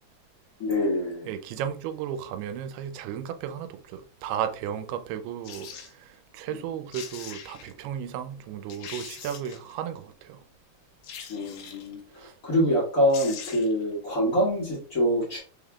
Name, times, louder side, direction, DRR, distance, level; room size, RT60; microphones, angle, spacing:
voice 1, 0.6-1.3 6.5-6.7 11.3-12.0 12.4-15.4, equal, 55° left, 0.9 m, -25 dB
voice 2, 1.3-10.4 12.2-12.3, right 9 dB, 90° right, 2.6 m, -34 dB
sound 1, 5.4-5.9 6.6-6.7 6.9-7.7 8.3-8.4 8.7-9.7 11.0-12.0 12.8-12.9 13.1-13.8 14.2-14.3, left 7 dB, 80° left, 2.5 m, -41 dB
6.1 x 3.5 x 2.3 m
omnidirectional pair, 4.4 m